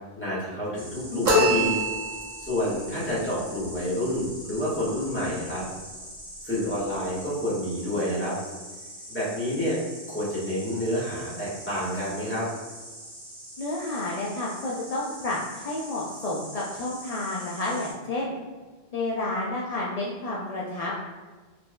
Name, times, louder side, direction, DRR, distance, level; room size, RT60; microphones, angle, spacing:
voice 1, 0.2-1.8 2.4-5.6 6.4-8.3 9.1-9.8 10.1-12.5, left 1 dB, 10° left, -10 dB, 1.3 m, -28 dB
Insect, 0.7-17.9, right 1 dB, 60° right, 1.6 m, -43 dB
sound 1, 1.2-2.5, equal, 40° right, 0.9 m, -23 dB
voice 2, 13.6-18.3 18.9-20.9, left 2 dB, 55° left, -5 dB, 0.4 m, -30 dB
4.2 x 3.3 x 2.2 m, 1.3 s
omnidirectional pair, 1.1 m